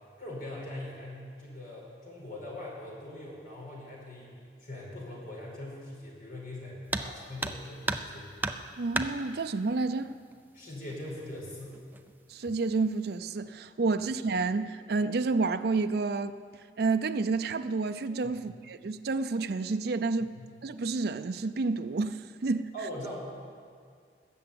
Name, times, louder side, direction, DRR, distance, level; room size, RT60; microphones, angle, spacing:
voice 1, 0.2-4.3 4.6-8.3 10.5-11.8 18.2-18.4 20.2-20.4 22.7-23.2, left 1 dB, 55° left, 4.9 m, -41 dB
sound 1, 6.9-7.1 7.4-8.1 8.4-9.1 10.3-10.4 10.9-11.0 11.7-12.1 12.5-12.9, right 2 dB, 10° right, 0.5 m, -32 dB
voice 2, 8.8-10.1 12.3-16.3 16.8-20.3 20.6-22.7, right 3 dB, 60° right, 0.5 m, -29 dB
20.0 x 6.9 x 8.6 m
head